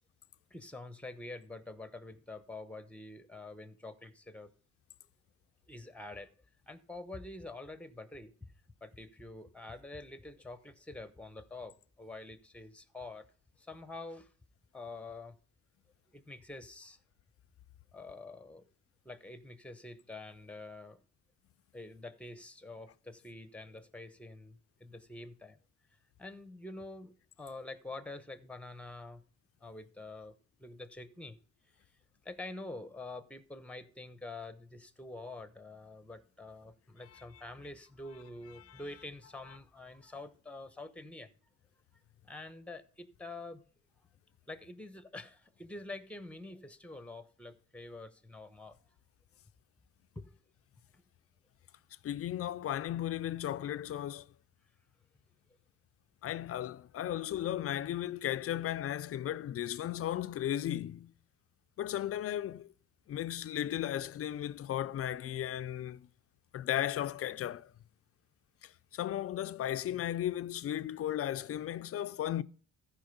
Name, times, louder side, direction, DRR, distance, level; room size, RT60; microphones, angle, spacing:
voice 1, 0.5-4.5 5.7-6.3 6.7-8.5 8.8-13.3 13.6-14.3 14.7-15.4 16.1-17.0 17.9-18.7 19.0-21.0 21.7-25.6 26.2-29.2 29.6-31.4 32.2-41.3 42.2-43.6 44.5-48.8 50.1-50.3 50.9-51.0, left 2 dB, 5° left, 1.0 m, -47 dB
voice 2, 52.0-54.3 56.2-61.1 61.8-62.7 63.1-66.1 66.5-67.7 68.6-72.4, left 11 dB, 50° left, 0.5 m, -35 dB
14.0 x 5.1 x 5.3 m
cardioid pair, 90°, 30 cm